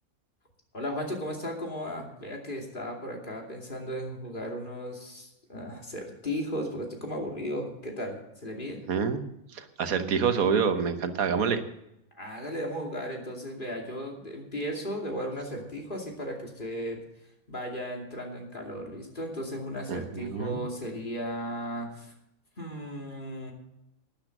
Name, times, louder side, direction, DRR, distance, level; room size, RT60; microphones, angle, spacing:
voice 1, 0.7-8.8 12.2-17.0 17.5-22.1 22.6-23.5, equal, 35° left, 0 dB, 2.8 m, -35 dB
voice 2, 8.9-9.2 9.5-11.6 19.9-20.6, right 6 dB, 85° right, 9 dB, 1.5 m, -27 dB
12.0 x 10.5 x 6.6 m, 0.83 s
omnidirectional pair, 1.5 m